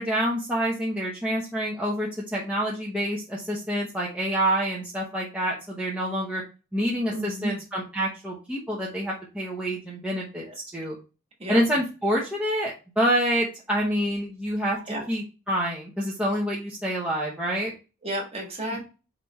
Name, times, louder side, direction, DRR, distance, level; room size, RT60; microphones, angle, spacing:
voice 1, 0.0-6.4 6.7-10.4 10.7-11.0 11.5-14.8 15.1-17.7, equal, 5° right, -4 dB, 0.8 m, -27 dB
voice 2, 7.1-7.6 10.5-10.6 11.4-11.6 14.9-15.0 18.0-18.8, right 1 dB, 25° right, 0 dB, 1.5 m, -32 dB
5.1 x 3.3 x 3.0 m, 0.32 s
head